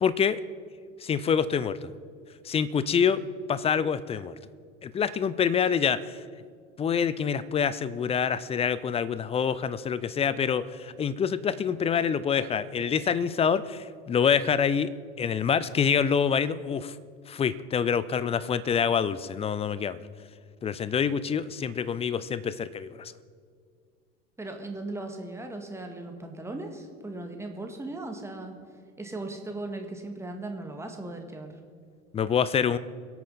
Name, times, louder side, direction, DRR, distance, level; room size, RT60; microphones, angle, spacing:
voice 1, 0.0-0.4 1.0-1.9 2.4-3.2 3.5-4.3 4.8-6.2 6.8-14.9 15.2-17.0 17.3-20.0 20.6-23.1 32.1-32.8, left 7 dB, 15° left, 16 dB, 0.5 m, -26 dB
voice 2, 24.4-28.5 29.0-31.5, right 2 dB, 5° right, 3 dB, 2.0 m, -37 dB
23.5 x 8.7 x 4.2 m, 2.1 s
figure-of-eight pair, 75°, 39 cm